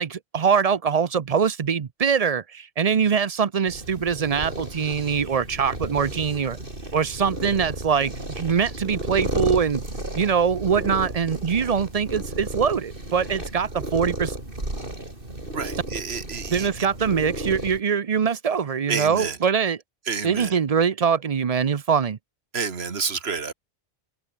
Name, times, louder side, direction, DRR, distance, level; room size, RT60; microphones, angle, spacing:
voice 1, 0.0-6.6 6.9-9.8 10.2-14.4 16.5-19.8 20.2-22.2, right 6 dB, 40° right, 0.7 m, -23 dB
sound 1, 3.7-17.8, right 1 dB, 55° right, 5.7 m, -33 dB
voice 2, 15.5-16.7 18.9-19.4 20.1-20.6 22.5-23.5, right 5 dB, 80° right, 1.9 m, -29 dB
open air
omnidirectional pair, 1.1 m